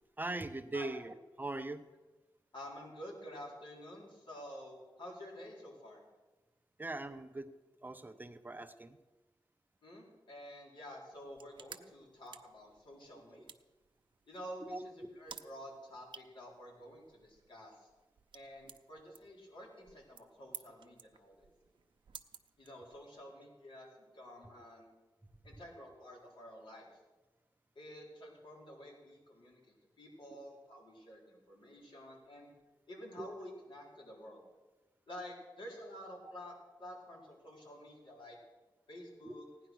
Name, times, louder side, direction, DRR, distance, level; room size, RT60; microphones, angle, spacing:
voice 1, 0.2-1.8 6.8-7.5 7.8-9.0 13.4-13.5 14.6-15.1 31.8-31.9 33.2-33.3 39.2-39.3, right 2 dB, 20° right, 9 dB, 0.7 m, -41 dB
voice 2, 2.5-6.0 9.8-13.5 14.3-14.8 15.2-17.9 18.3-21.5 22.6-24.9 25.4-26.9 27.8-32.5 32.9-34.4 35.1-38.4 38.9-39.4, equal, 75° left, -2 dB, 4.2 m, -50 dB
sound 1, 11.1-23.2, right 6 dB, 75° right, 0.7 m, -56 dB
16.5 x 10.5 x 6.2 m, 1.2 s
wide cardioid pair, 135°, 9 cm